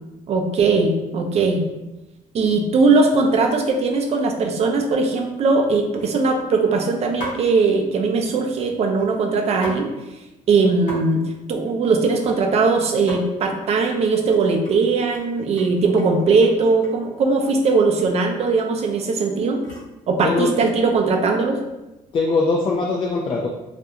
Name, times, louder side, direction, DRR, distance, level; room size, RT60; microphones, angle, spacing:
voice 1, 0.3-1.6 2.3-9.9 10.5-11.2 11.5-19.6 20.1-21.6, right 4 dB, 50° right, 3 dB, 0.4 m, -19 dB
sound 1, 5.1-5.2 6.0-6.5 7.2-7.5 8.9-9.8 10.2-10.3 10.5-11.0 11.3-12.6 12.9-13.2 13.6-14.0 14.3-17.1 18.0-18.2 18.5-20.0 20.6-21.0, equal, 70° left, 1.0 m, -38 dB
voice 2, 20.2-20.5 22.1-23.5, left 3 dB, 40° left, -2 dB, 0.3 m, -21 dB
2.4 x 2.2 x 2.8 m, 0.99 s
cardioid pair, 110°, 14 cm